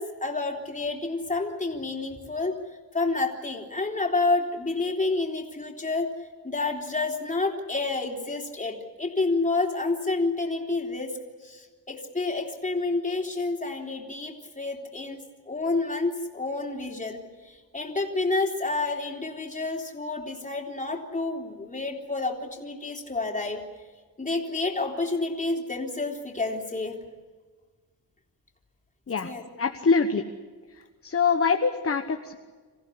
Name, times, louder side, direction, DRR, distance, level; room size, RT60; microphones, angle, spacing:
voice 1, 0.0-2.6 2.9-6.1 6.4-11.1 11.4-23.6 24.2-27.0 29.2-29.4, left 3 dB, 20° left, 1 dB, 3.7 m, -29 dB
voice 2, 29.6-30.2 31.0-32.4, left 5 dB, 35° left, 5 dB, 1.3 m, -24 dB
27.0 x 15.5 x 10.0 m, 1.4 s
cardioid pair, 100°, 38 cm